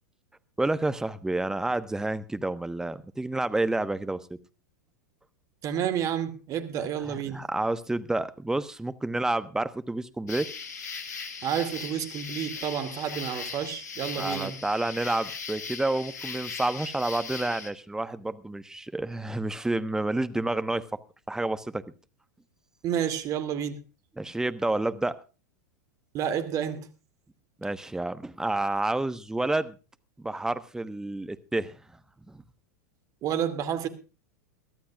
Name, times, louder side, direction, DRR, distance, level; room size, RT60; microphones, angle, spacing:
voice 1, 0.6-4.4 6.8-10.5 14.2-21.0 21.3-21.8 24.2-25.2 27.6-29.8 30.2-31.8 32.3-32.4, right 2 dB, 5° right, 1.2 m, -29 dB
voice 2, 5.6-7.4 11.4-14.6 22.8-23.8 26.1-26.9 33.2-33.9, right 9 dB, 40° right, 2.4 m, -30 dB
sound 1, 10.3-17.7, left 5 dB, 75° left, 2.3 m, -38 dB
22.5 x 14.5 x 2.4 m
hypercardioid pair, 95°, 9 cm